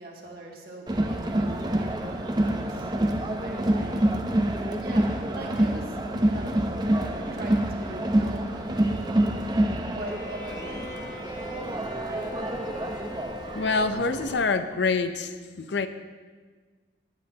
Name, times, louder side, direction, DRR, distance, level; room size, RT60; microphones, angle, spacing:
voice 1, 0.0-4.1 4.6-6.0 6.3-6.8 7.3-11.4 11.8-12.5, right 1 dB, 55° right, -1 dB, 1.7 m, -42 dB
Crowd, 0.9-14.4, right 1 dB, 20° right, 0.6 m, -27 dB
Bowed string instrument, 9.9-14.3, left 2 dB, 35° left, 2.0 m, -42 dB
voice 2, 13.5-15.9, left 4 dB, 70° left, 10 dB, 0.6 m, -26 dB
17.5 x 8.7 x 2.8 m, 1.4 s
head